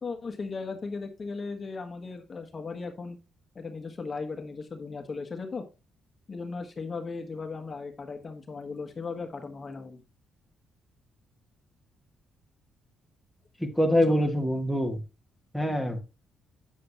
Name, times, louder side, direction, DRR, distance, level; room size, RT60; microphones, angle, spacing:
voice 1, 0.0-3.2 3.5-5.6 6.3-10.0 13.9-14.2, left 4 dB, 35° left, 1.3 m, -37 dB
voice 2, 13.6-15.0 15.5-16.0, equal, ahead, 1.7 m, -25 dB
8.6 x 7.6 x 3.0 m
cardioid pair, 90°, 0 cm